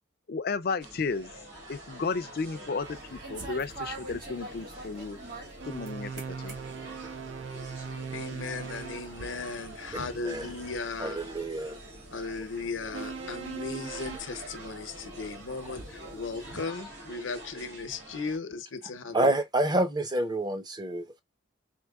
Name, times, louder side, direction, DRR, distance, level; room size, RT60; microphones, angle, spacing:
voice 1, 0.3-1.3 1.7-5.2 5.7-6.6, left 4 dB, 50° left, 0.4 m, -33 dB
sound 1, 0.8-18.4, right 1 dB, 65° right, 2.3 m, -46 dB
sound 2, 2.8-16.6, right 2 dB, 45° right, 1.4 m, -47 dB
sound 3, 5.6-9.1 12.9-14.2, right 5 dB, 80° right, 0.6 m, -39 dB
voice 2, 8.1-11.2 12.1-19.3, left 4 dB, 80° left, 0.8 m, -37 dB
voice 3, 11.0-11.8 19.1-21.2, right 1 dB, 20° right, 0.6 m, -28 dB
4.5 x 3.4 x 2.3 m
head